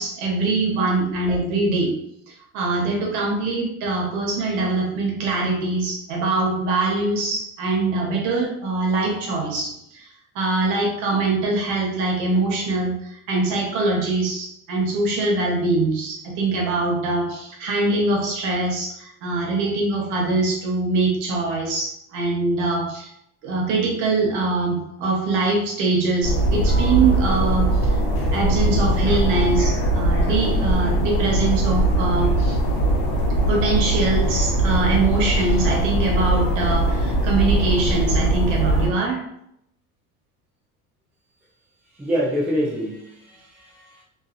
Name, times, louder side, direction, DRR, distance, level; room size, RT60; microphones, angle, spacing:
voice 1, 0.0-1.9 2.3-10.1 10.3-23.1 23.4-28.0 28.3-32.6 33.5-39.2, right 3 dB, 70° right, -1 dB, 1.0 m, -23 dB
sound 1, 26.2-38.9, right 1 dB, 50° left, 0.9 m, -20 dB
voice 2, 42.0-44.0, equal, 5° right, -4 dB, 0.3 m, -26 dB
2.6 x 2.4 x 2.6 m, 0.76 s
cardioid pair, 150°, 31 cm